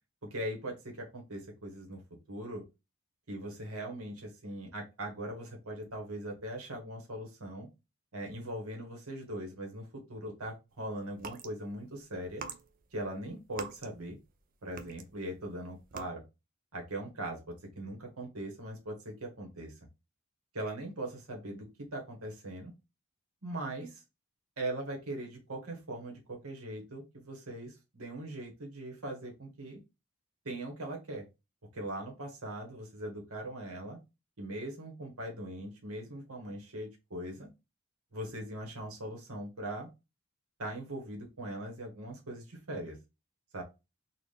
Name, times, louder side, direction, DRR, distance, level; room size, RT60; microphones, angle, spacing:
voice 1, 0.3-2.0 2.3-2.6 3.3-7.7 8.1-12.4 12.9-14.2 14.6-16.2 16.7-19.8 20.5-21.7 21.9-22.7 23.4-24.0 24.6-29.8 30.4-31.2 31.7-34.0 34.4-37.5 38.1-39.9 40.6-43.0 43.5-43.6, right 1 dB, 90° right, 1 dB, 1.2 m, -40 dB
sound 1, 11.1-11.5 12.2-14.4 14.7-15.3 15.8-16.0, right 5 dB, 40° right, 0.4 m, -44 dB
4.0 x 2.4 x 3.2 m, 0.26 s
head